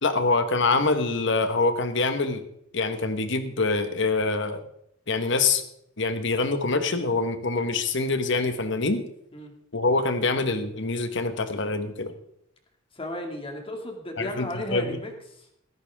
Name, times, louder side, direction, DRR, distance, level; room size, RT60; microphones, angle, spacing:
voice 1, 0.0-2.4 2.7-4.6 5.1-5.6 6.0-9.0 9.7-12.1 14.2-14.9, left 3 dB, 65° left, 9 dB, 1.4 m, -25 dB
voice 2, 12.9-15.5, left 1 dB, 25° left, 3 dB, 2.4 m, -34 dB
15.5 x 14.5 x 3.7 m, 0.74 s
head